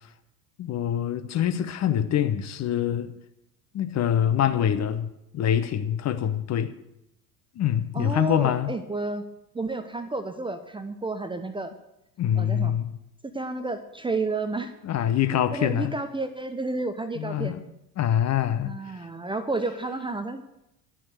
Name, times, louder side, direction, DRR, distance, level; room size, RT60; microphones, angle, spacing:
voice 1, 0.6-3.1 3.7-6.7 7.6-8.7 12.2-13.0 14.8-15.9 17.2-17.6 18.0-18.7, left 10 dB, 35° left, 1.0 m, -25 dB
voice 2, 7.9-9.2 9.5-11.7 12.4-12.7 13.3-14.7 15.5-17.6 18.6-20.4, right 3 dB, 10° right, 0.8 m, -31 dB
12.0 x 7.5 x 8.0 m
figure-of-eight pair, 65°, 49 cm